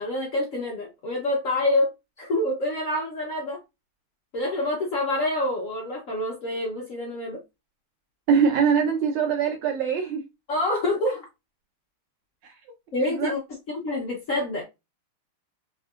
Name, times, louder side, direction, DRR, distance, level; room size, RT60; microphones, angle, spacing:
voice 1, 0.0-1.9 2.2-3.6 4.3-7.4 10.5-11.2 12.9-13.4 13.7-14.6, left 1 dB, 70° left, 0.7 m, -27 dB
voice 2, 8.3-10.2 12.4-12.5 13.0-13.3, right 6 dB, 80° right, 1.4 m, -23 dB
3.5 x 2.6 x 2.3 m
omnidirectional pair, 2.4 m